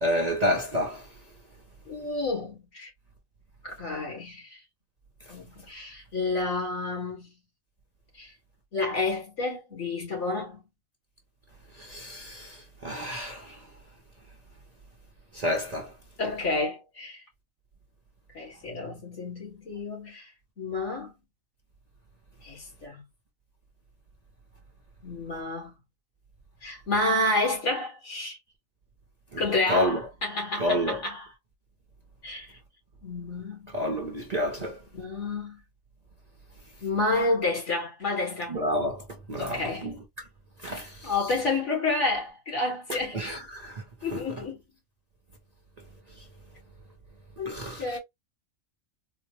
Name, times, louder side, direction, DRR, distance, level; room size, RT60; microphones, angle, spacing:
voice 1, 0.0-1.1 11.8-13.6 15.3-15.9 29.3-29.4 29.7-30.0 30.6-31.0 33.7-34.8 38.5-39.0 39.3-40.0 40.6-41.1 43.1-43.8 44.1-44.2 47.5-48.0, equal, 40° right, 0.6 m, -29 dB
voice 2, 1.9-2.9 3.6-4.6 5.3-7.3 8.2-8.3 8.7-10.6 16.2-17.2 18.3-20.3 20.6-21.1 22.4-23.0 25.0-25.7 26.6-28.4 29.4-31.3 32.2-32.5 33.0-33.7 34.9-35.6 36.8-38.6 39.4-39.9 40.7-43.2 44.0-44.6 47.4-48.0, left 2 dB, 65° left, 2.2 m, -30 dB
4.1 x 2.0 x 3.0 m
omnidirectional pair, 1.3 m